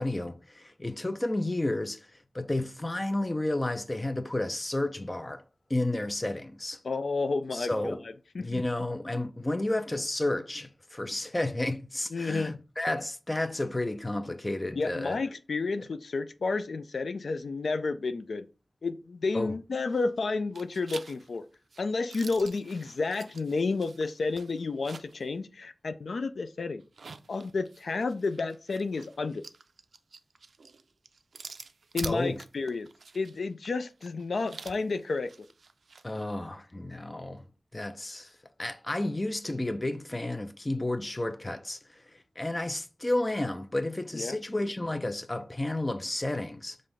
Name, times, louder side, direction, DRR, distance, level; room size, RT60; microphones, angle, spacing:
voice 1, 0.0-2.0 2.3-5.4 5.7-6.8 7.5-8.0 8.4-15.2 19.3-19.5 32.0-32.4 36.0-37.4 37.7-38.3 38.6-41.8 42.4-46.8, left 1 dB, 25° left, 0.5 m, -31 dB
voice 2, 6.8-8.6 12.1-12.6 14.3-14.4 14.8-18.5 18.8-21.5 21.8-26.8 27.3-29.4 31.9-32.9 33.1-35.3 44.1-44.4, left 3 dB, 85° left, 0.3 m, -31 dB
sound 1, 19.8-20.2 20.5-25.3 25.6-25.7 26.8-36.1, right 4 dB, 90° right, 0.3 m, -47 dB
5.5 x 2.6 x 3.4 m
wide cardioid pair, 70°, 0 cm